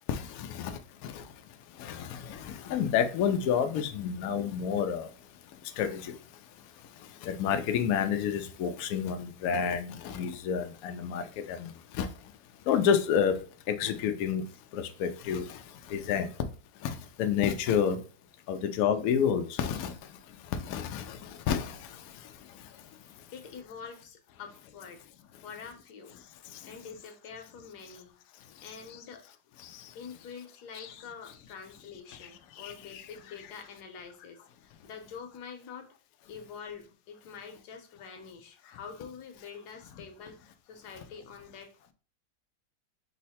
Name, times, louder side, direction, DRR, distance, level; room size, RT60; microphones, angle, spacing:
voice 1, 0.1-1.3 1.8-5.1 5.8-6.2 7.2-12.1 12.7-14.4 14.7-16.3 16.8-18.0 18.5-20.0 20.5-22.0 26.5-26.6 29.6-29.9 30.7-30.9 32.2-32.3 32.6-33.1, left 8 dB, 90° left, 0.7 m, -30 dB
voice 2, 23.3-25.1 25.4-26.2 26.6-28.2 28.6-29.2 29.9-35.9 36.3-41.7, left 6 dB, 65° left, 1.2 m, -46 dB
5.5 x 2.1 x 4.1 m
omnidirectional pair, 2.1 m